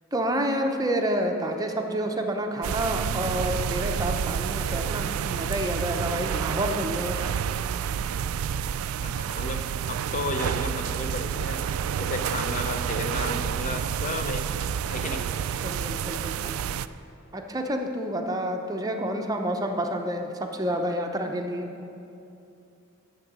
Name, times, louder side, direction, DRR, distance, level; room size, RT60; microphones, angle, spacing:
voice 1, 0.1-7.3 15.2-15.3 15.6-16.6 17.3-21.7, right 1 dB, 20° right, 4 dB, 0.6 m, -29 dB
sound 1, 2.6-16.9, right 8 dB, 85° right, 0.3 m, -29 dB
voice 2, 9.0-11.6 12.0-15.2, left 2 dB, 40° left, 6 dB, 0.6 m, -33 dB
9.8 x 7.4 x 6.0 m, 2.7 s
head